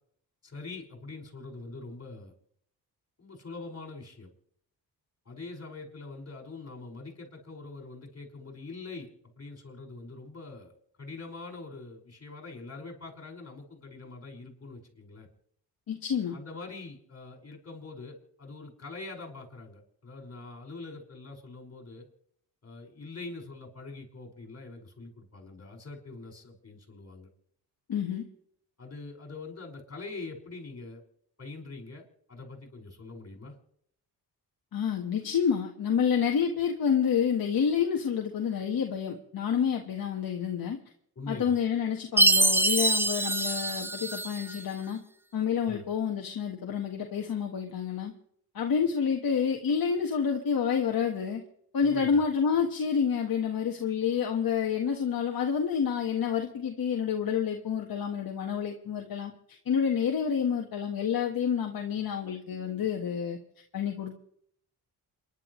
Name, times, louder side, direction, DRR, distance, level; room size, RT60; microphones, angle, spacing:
voice 1, 0.4-2.3 3.2-4.3 5.3-9.1 9.4-10.7 11.0-15.3 16.3-22.1 22.6-27.3 28.8-31.0 31.4-33.6 41.2-41.6 45.6-45.8 51.8-52.2, left 3 dB, 40° left, 1 dB, 5.7 m, -44 dB
voice 2, 15.9-16.4 27.9-28.2 34.7-40.8 41.3-45.0 45.3-48.1 48.5-51.4 51.7-59.3 59.6-63.4 63.7-64.2, left 7 dB, 60° left, 1 dB, 1.6 m, -28 dB
Chime, 42.2-44.6, right 2 dB, 5° right, 0.6 m, -24 dB
28.0 x 11.0 x 3.2 m, 0.67 s
cardioid pair, 85°, 39 cm